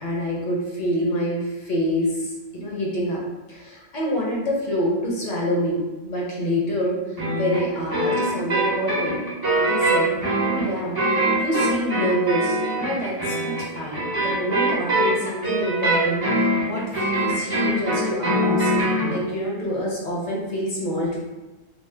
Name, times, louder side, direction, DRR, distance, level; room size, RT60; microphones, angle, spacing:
voice 1, 0.0-3.2 3.5-7.0 7.3-9.2 9.6-10.2 10.4-11.0 11.4-21.2, equal, 45° left, -4 dB, 0.8 m, -26 dB
sound 1, 7.2-19.1, right 1 dB, 20° right, 0.8 m, -23 dB
2.7 x 2.1 x 3.3 m, 1.1 s
omnidirectional pair, 1.2 m